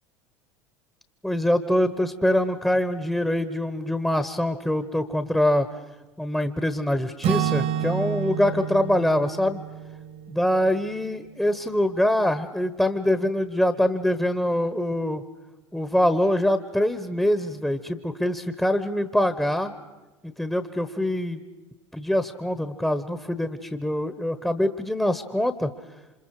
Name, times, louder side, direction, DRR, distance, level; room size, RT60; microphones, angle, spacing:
voice 1, 1.2-5.7 6.2-9.6 10.3-15.2 15.7-19.7 20.2-21.4 21.9-25.7, left 1 dB, 5° left, 10 dB, 1.4 m, -24 dB
Acoustic guitar / Strum, 7.2-11.2, right 9 dB, 45° right, 1.8 m, -29 dB
28.5 x 27.0 x 5.0 m, 1.1 s
figure-of-eight pair, 70°, 15 cm